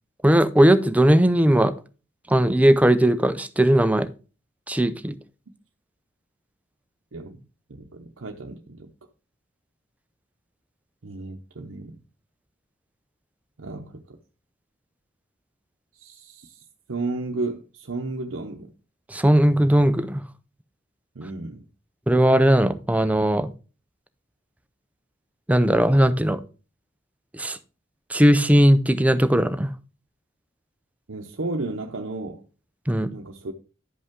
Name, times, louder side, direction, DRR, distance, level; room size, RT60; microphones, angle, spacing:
voice 1, 0.2-1.7 2.3-4.1 4.7-5.2 19.1-20.2 22.1-23.5 25.5-26.4 27.3-27.6 28.1-29.7 32.9-33.1, right 1 dB, 5° right, 0.5 m, -18 dB
voice 2, 7.1-7.4 7.7-8.9 11.0-12.0 13.6-14.2 15.9-18.7 21.1-21.7 31.1-32.4 33.1-33.5, right 2 dB, 80° right, 0.8 m, -33 dB
11.0 x 5.3 x 3.6 m
head